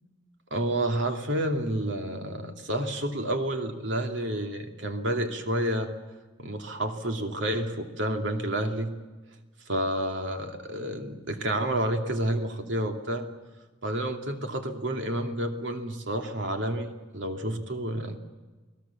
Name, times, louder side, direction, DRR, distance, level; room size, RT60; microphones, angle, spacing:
voice 1, 0.5-5.9 6.4-8.9 9.7-13.3 13.8-18.2, right 1 dB, 65° right, 4 dB, 2.5 m, -30 dB
29.0 x 20.0 x 7.2 m, 1.3 s
head